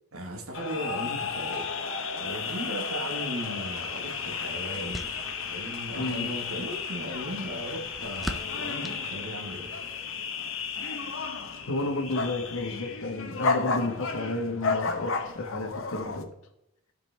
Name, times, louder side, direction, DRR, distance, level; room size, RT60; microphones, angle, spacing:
voice 1, 0.1-1.7 2.2-9.7, equal, 70° right, 1.3 m, -37 dB
sound 1, 0.5-16.2, left 5 dB, 60° left, 0.9 m, -33 dB
sound 2, 3.8-9.9, equal, ahead, 0.4 m, -44 dB
voice 2, 5.9-6.3 11.7-16.3, left 2 dB, 75° left, 1.3 m, -32 dB
15.0 x 5.1 x 3.3 m
head